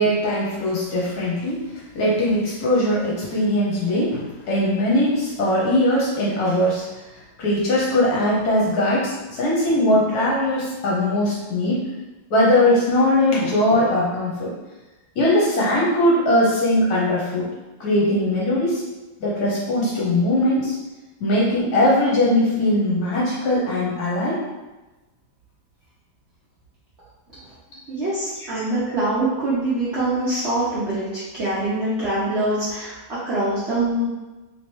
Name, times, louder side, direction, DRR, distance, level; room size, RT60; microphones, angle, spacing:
voice 1, 0.0-1.6 1.9-6.8 7.4-11.9 12.3-14.5 15.2-17.5 17.8-18.8 19.2-20.8 21.2-24.4, left 1 dB, 60° left, -5 dB, 1.1 m, -20 dB
voice 2, 27.9-34.1, right 1 dB, 55° right, -11 dB, 0.7 m, -24 dB
3.2 x 2.9 x 3.0 m, 1.1 s
omnidirectional pair, 2.1 m